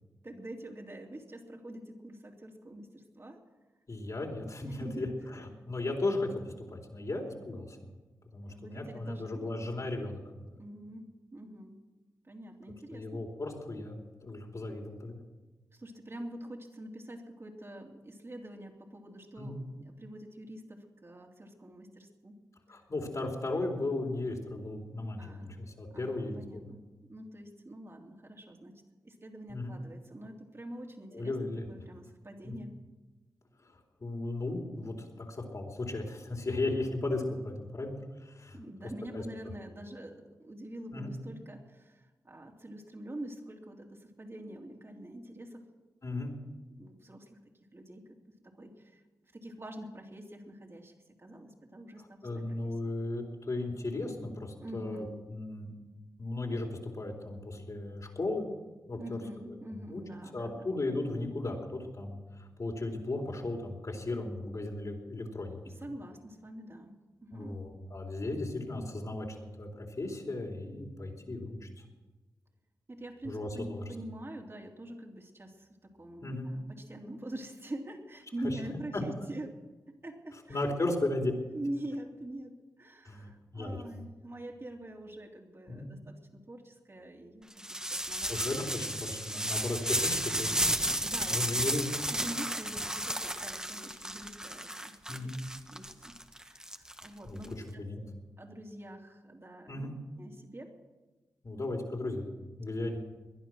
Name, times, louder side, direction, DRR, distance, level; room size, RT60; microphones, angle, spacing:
voice 1, 0.2-3.4 4.6-5.1 8.5-9.9 10.6-11.8 12.3-13.2 15.7-22.4 25.2-25.6 25.9-26.8 27.1-32.7 38.5-45.7 46.8-47.4 47.7-48.1 48.4-49.0 49.3-50.9 51.2-52.9 54.6-55.2 59.0-60.7 65.8-67.6 72.9-79.6 79.9-80.7 81.5-88.9 89.3-89.5 90.8-91.6 92.1-95.3 95.7-97.5 98.4-100.7 102.8-102.9, right 1 dB, 35° right, 0 dB, 3.1 m, -45 dB
voice 2, 3.9-7.9 8.3-10.6 12.9-15.2 19.4-19.6 22.7-26.7 29.5-29.7 31.1-31.7 32.4-32.5 34.0-38.0 38.2-38.6 39.1-39.2 40.9-41.1 46.0-46.3 52.0-55.7 56.2-58.5 58.9-59.2 59.7-60.0 60.3-65.6 67.3-71.7 73.2-73.8 76.2-76.5 78.9-79.0 80.5-81.3 83.1-83.8 85.8-85.9 88.3-90.5 91.3-91.8 95.1-95.4 97.2-97.4 97.7-98.0 99.7-99.9 101.4-102.3 102.6-103.0, left 2 dB, 50° left, 1 dB, 4.1 m, -36 dB
sound 1, 87.6-97.5, right 1 dB, 10° right, 1.6 m, -33 dB
20.5 x 11.0 x 6.3 m, 1.2 s
cardioid pair, 45°, 7 cm